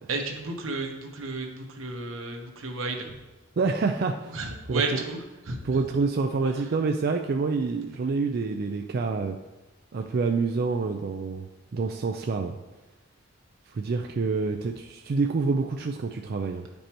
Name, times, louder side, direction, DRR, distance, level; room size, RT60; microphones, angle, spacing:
voice 1, 0.1-3.2 4.3-5.6 6.4-6.7, right 3 dB, 85° right, 2 dB, 1.1 m, -33 dB
voice 2, 3.6-4.4 4.7-5.0 5.6-9.4 9.9-11.5 11.7-12.6 13.7-16.7, right 4 dB, 50° right, 4 dB, 0.4 m, -27 dB
9.7 x 5.3 x 3.0 m, 1.1 s
head